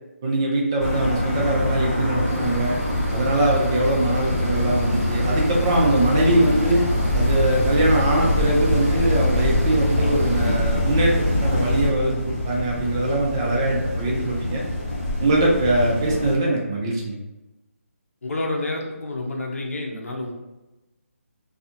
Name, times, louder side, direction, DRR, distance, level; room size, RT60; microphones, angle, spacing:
voice 1, 0.2-2.8 3.1-6.8 7.1-14.6 15.2-17.2, right 1 dB, 20° right, -2 dB, 0.3 m, -22 dB
sound 1, 0.8-16.3, left 1 dB, 30° left, 1.4 m, -24 dB
sound 2, 2.2-10.6, right 2 dB, 80° right, 0.7 m, -39 dB
voice 2, 18.2-20.3, left 2 dB, 75° left, 0 dB, 0.7 m, -29 dB
2.6 x 2.4 x 2.5 m, 1.0 s
figure-of-eight pair, 160°, 8 cm